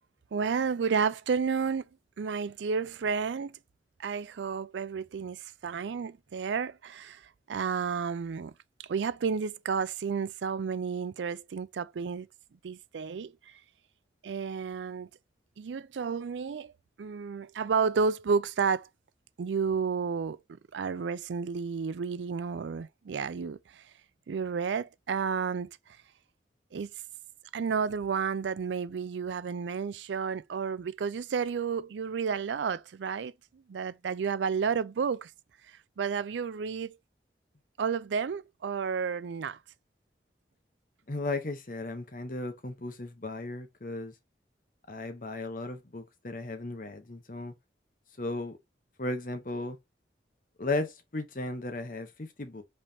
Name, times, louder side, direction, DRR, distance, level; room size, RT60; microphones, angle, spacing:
voice 1, 0.3-1.9 2.2-3.5 4.0-7.2 7.5-8.5 8.8-12.3 12.6-13.3 14.2-15.1 15.6-16.7 17.0-18.9 19.4-23.8 24.3-25.8 26.7-26.9 27.5-33.3 33.7-35.3 35.7-37.0 37.8-39.6, right 5 dB, 85° right, 0.4 m, -31 dB
voice 2, 41.1-44.1 44.9-47.5 48.2-48.6 49.0-49.8 50.6-52.6, left 2 dB, 50° left, 0.9 m, -35 dB
5.3 x 3.3 x 2.7 m
head